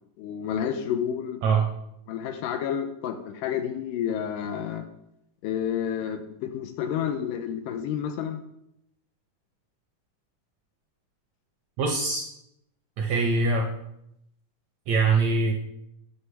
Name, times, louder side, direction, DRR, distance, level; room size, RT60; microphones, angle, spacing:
voice 1, 0.2-1.4 2.1-4.8 5.4-8.4, left 8 dB, 80° left, 7 dB, 2.1 m, -30 dB
voice 2, 11.8-12.2 13.0-13.7 14.9-15.6, right 4 dB, 75° right, 1 dB, 1.7 m, -23 dB
9.7 x 5.7 x 3.3 m, 0.80 s
omnidirectional pair, 3.8 m